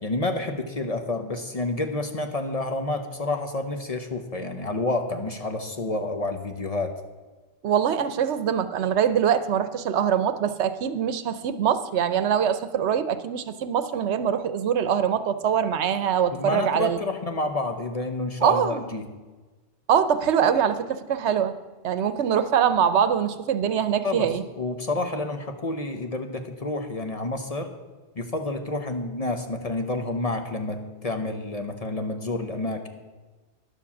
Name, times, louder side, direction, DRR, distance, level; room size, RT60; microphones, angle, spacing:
voice 1, 0.0-6.9 16.3-19.1 24.0-27.7 28.1-32.9, left 2 dB, 35° left, 6 dB, 0.9 m, -29 dB
voice 2, 7.6-17.0 18.4-18.9 19.9-21.6 21.8-24.4, right 8 dB, 75° right, 12 dB, 1.0 m, -23 dB
11.0 x 7.4 x 7.1 m, 1.3 s
omnidirectional pair, 1.2 m